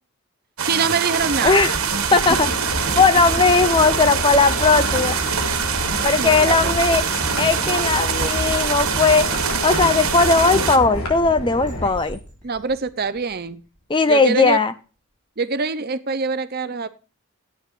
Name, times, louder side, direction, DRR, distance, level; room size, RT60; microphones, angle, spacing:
voice 1, 0.6-1.7 2.1-2.2 5.8-6.8 12.4-13.6 14.1-14.6 15.4-16.9, right 4 dB, 45° right, 13 dB, 0.7 m, -25 dB
sound 1, 0.6-10.8, right 6 dB, 70° right, 1.5 m, -24 dB
sound 2, 1.2-13.8, right 1 dB, 5° left, 6.2 m, -35 dB
voice 2, 1.4-1.7 2.1-2.5 3.0-5.2 6.0-7.0 7.4-9.3 9.6-12.2 13.9-14.7, left 4 dB, 20° left, 12 dB, 0.5 m, -17 dB
sound 3, 2.2-11.9, left 1 dB, 70° left, 3.4 m, -30 dB
14.0 x 9.2 x 2.5 m, 0.36 s
head